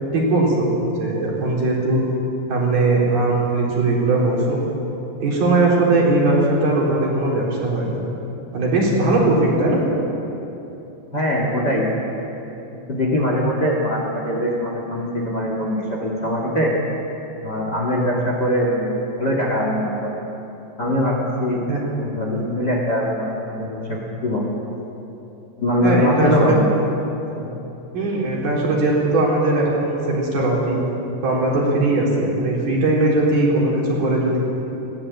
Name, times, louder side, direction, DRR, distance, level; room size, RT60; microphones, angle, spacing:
voice 1, 0.1-2.0 2.5-4.7 5.2-7.9 8.5-9.8 21.7-21.8 25.8-26.6 27.9-30.8 31.2-34.4, right 2 dB, 60° right, -4 dB, 5.7 m, -19 dB
voice 2, 11.1-12.2 12.9-16.7 17.4-20.2 20.8-21.6 22.0-24.5 25.6-26.7 27.3-27.6, equal, 30° left, -2 dB, 2.2 m, -22 dB
19.5 x 17.5 x 8.6 m, 3.0 s
omnidirectional pair, 5.0 m